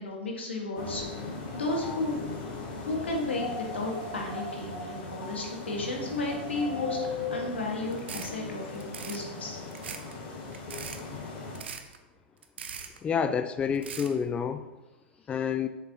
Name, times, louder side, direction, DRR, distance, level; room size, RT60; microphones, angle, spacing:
voice 1, 0.0-2.3 2.8-9.6, left 2 dB, 85° left, 0 dB, 1.9 m, -33 dB
sound 1, 0.7-11.6, left 3 dB, 50° left, 2.4 m, -38 dB
sound 2, 7.9-8.3 8.7-9.2 9.7-10.1 10.5-11.0 11.5-12.0 12.4-13.0 13.7-14.1, right 7 dB, 75° right, 0.8 m, -40 dB
voice 2, 13.0-14.7 15.3-15.7, left 7 dB, 20° left, 10 dB, 0.3 m, -28 dB
7.2 x 7.1 x 3.0 m, 1.1 s
hypercardioid pair, 105°, 6 cm